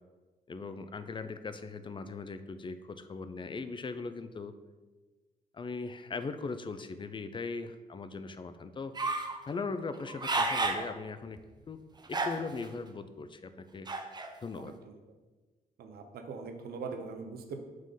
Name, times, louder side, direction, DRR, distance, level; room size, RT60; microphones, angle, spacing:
voice 1, 0.5-4.5 5.5-9.0 9.5-11.4 11.7-11.8 12.1-13.9 14.4-14.8, left 4 dB, 30° left, 10 dB, 0.4 m, -39 dB
sound 1, 9.0-9.4 9.9-10.9 11.4-11.5 12.1-12.7 13.9-14.3, right 3 dB, 25° right, 0.7 m, -31 dB
voice 2, 15.8-17.6, right 4 dB, 80° right, 5 dB, 0.8 m, -41 dB
5.2 x 3.8 x 5.4 m, 1.3 s
cardioid pair, 90°, 16 cm